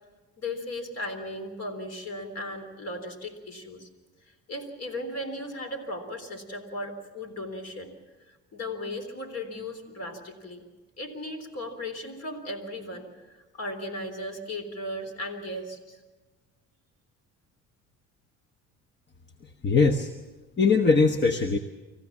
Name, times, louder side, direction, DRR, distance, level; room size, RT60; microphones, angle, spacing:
voice 1, 0.4-3.9 4.3-7.9 8.3-10.6 11.0-16.0, left 1 dB, 55° left, 6 dB, 3.7 m, -36 dB
voice 2, 19.6-20.1 20.6-21.6, left 4 dB, 35° left, 7 dB, 1.1 m, -21 dB
26.0 x 15.0 x 7.3 m, 1.3 s
cardioid pair, 90°, 30 cm